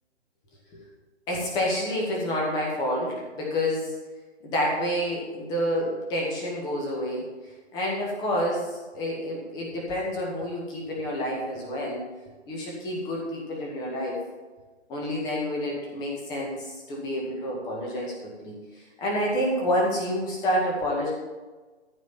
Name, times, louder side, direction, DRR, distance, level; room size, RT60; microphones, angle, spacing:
voice 1, 1.3-4.0 4.4-7.2 7.7-12.0 12.5-14.2 14.9-18.1 18.4-18.5 19.0-21.1, equal, 10° left, -2 dB, 2.1 m, -28 dB
14.0 x 5.2 x 7.4 m, 1.2 s
figure-of-eight pair, 140°, 35 cm